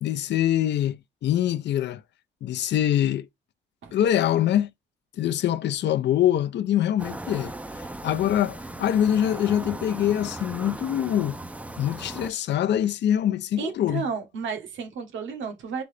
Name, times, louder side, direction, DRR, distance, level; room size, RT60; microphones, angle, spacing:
voice 1, 0.0-2.0 2.4-3.3 3.9-4.7 5.2-7.5 8.0-11.4 11.8-14.0, left 11 dB, 60° left, 0.5 m, -24 dB
sound 1, 7.0-12.3, right 1 dB, 5° right, 0.5 m, -37 dB
voice 2, 13.6-15.8, right 6 dB, 70° right, 1.3 m, -32 dB
3.9 x 3.8 x 3.3 m
cardioid pair, 90°, 20 cm